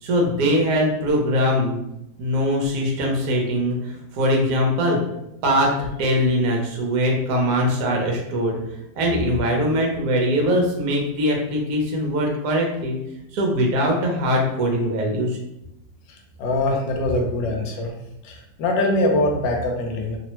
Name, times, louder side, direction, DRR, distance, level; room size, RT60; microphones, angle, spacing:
voice 1, 0.0-1.8 2.2-5.0 5.4-8.6 8.9-13.0 13.3-15.4, equal, 65° right, 0 dB, 1.1 m, -21 dB
voice 2, 16.1-17.9 18.2-20.2, left 1 dB, 80° left, 2 dB, 1.3 m, -23 dB
3.1 x 2.1 x 2.9 m, 0.83 s
omnidirectional pair, 2.0 m